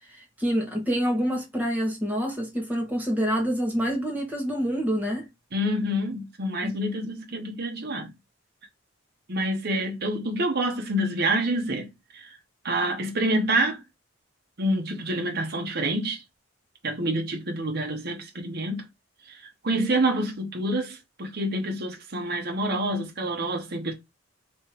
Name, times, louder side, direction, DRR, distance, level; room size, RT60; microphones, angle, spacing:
voice 1, 0.1-5.3 6.6-6.7, equal, 10° right, 1.4 m, -27 dB
voice 2, 5.5-8.1 9.3-11.9 12.1-12.3 12.6-13.8 14.6-16.2 16.8-18.8 19.3-19.4 19.6-23.9, right 1 dB, 50° right, 0.9 m, -27 dB
3.3 x 3.0 x 4.5 m
head